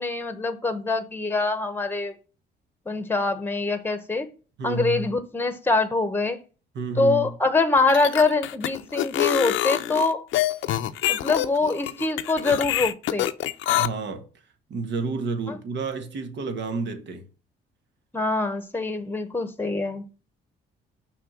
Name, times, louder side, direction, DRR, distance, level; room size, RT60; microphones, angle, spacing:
voice 1, 0.0-2.1 2.9-4.3 4.6-6.4 7.0-10.3 11.1-13.3 15.5-15.6 18.1-20.0, left 3 dB, 10° left, 1.0 m, -24 dB
voice 2, 4.6-5.1 6.7-7.3 13.7-14.3 14.7-17.3, right 4 dB, 65° right, 1.3 m, -30 dB
sound 1, 7.8-13.9, left 13 dB, 80° left, 0.6 m, -25 dB
5.9 x 3.5 x 5.9 m
cardioid pair, 90°, 20 cm